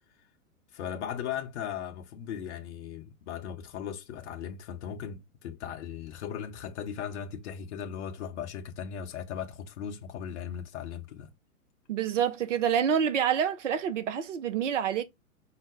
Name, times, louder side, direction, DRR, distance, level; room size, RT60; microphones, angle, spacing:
voice 1, 0.7-11.3, left 8 dB, 50° left, 0.8 m, -37 dB
voice 2, 11.9-15.0, right 8 dB, 55° right, 0.7 m, -27 dB
4.8 x 2.0 x 3.6 m
figure-of-eight pair, 110°, 44 cm